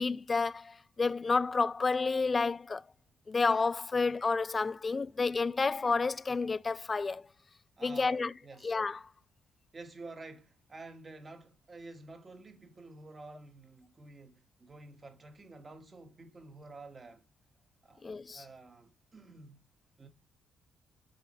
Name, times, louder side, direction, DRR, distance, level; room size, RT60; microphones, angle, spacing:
voice 1, 0.0-2.8 3.3-7.3 7.8-8.3 8.6-9.0 18.0-18.4, left 4 dB, 30° left, 0.3 m, -30 dB
voice 2, 7.8-8.8 9.7-17.3 17.8-18.0 18.3-19.6 20.0-20.1, right 3 dB, 30° right, 1.7 m, -50 dB
8.6 x 4.9 x 3.2 m
cardioid pair, 90°, 0 cm